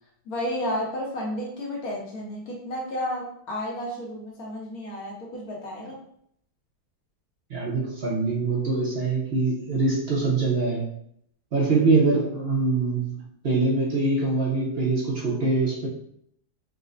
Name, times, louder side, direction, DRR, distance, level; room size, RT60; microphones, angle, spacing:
voice 1, 0.3-6.0, equal, 70° left, -2 dB, 1.2 m, -32 dB
voice 2, 7.5-10.9 11.5-15.9, right 3 dB, 55° right, -4 dB, 0.7 m, -24 dB
4.9 x 2.0 x 2.5 m, 0.68 s
omnidirectional pair, 1.7 m